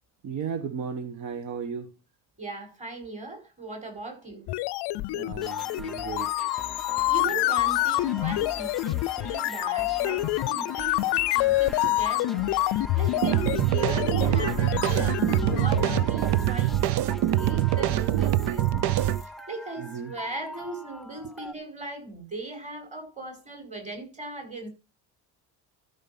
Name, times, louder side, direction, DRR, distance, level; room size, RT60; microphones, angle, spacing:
voice 1, 0.2-2.0 5.1-6.5 19.8-20.1, right 6 dB, 45° right, 1.2 m, -35 dB
voice 2, 2.4-4.4 7.1-12.5 13.0-24.7, right 2 dB, 15° right, 4.9 m, -39 dB
sound 1, 4.5-16.1, left 18 dB, 70° left, 0.6 m, -27 dB
sound 2, 5.4-21.5, left 1 dB, ahead, 0.5 m, -41 dB
sound 3, 13.2-19.2, right 13 dB, 65° right, 0.8 m, -24 dB
13.0 x 5.4 x 5.8 m
cardioid pair, 170°, 41 cm